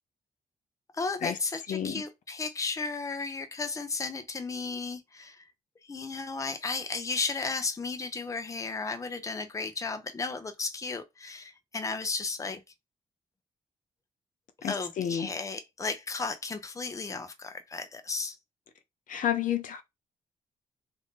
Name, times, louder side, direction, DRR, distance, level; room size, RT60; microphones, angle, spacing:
voice 1, 0.9-5.5 5.9-12.6 14.6-18.4, left 4 dB, 20° left, 0.6 m, -34 dB
voice 2, 1.7-2.0 14.6-15.3 19.1-19.8, left 9 dB, 70° left, 0.5 m, -30 dB
2.6 x 2.6 x 3.5 m
cardioid pair, 110°, 14 cm